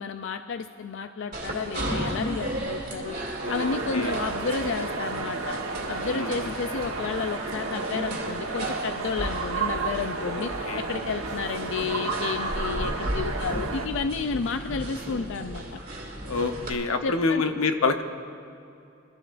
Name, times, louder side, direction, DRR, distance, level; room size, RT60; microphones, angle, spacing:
voice 1, 0.0-3.2 3.5-5.6 5.9-15.8 17.0-17.4, left 5 dB, 65° left, 8 dB, 0.4 m, -31 dB
sound 1, 1.3-16.7, right 1 dB, 40° right, 2.2 m, -35 dB
voice 2, 3.4-4.1 6.1-6.5 10.3-10.8 16.3-18.0, left 4 dB, 90° left, 7 dB, 0.8 m, -27 dB
sound 2, 3.4-13.9, right 3 dB, 85° right, 1.3 m, -32 dB
26.0 x 13.0 x 2.5 m, 2.7 s
head